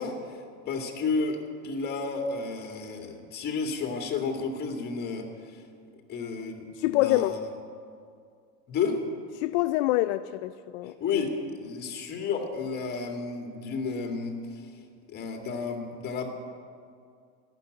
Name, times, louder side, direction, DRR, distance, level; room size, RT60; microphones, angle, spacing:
voice 1, 0.0-5.6 6.1-7.4 8.7-9.0 10.8-14.7 15.1-16.3, left 4 dB, 30° left, 2.2 m, -32 dB
voice 2, 6.8-7.3 9.4-10.9, left 16 dB, 75° left, 0.5 m, -25 dB
12.5 x 12.0 x 9.3 m
cardioid pair, 160°, 34 cm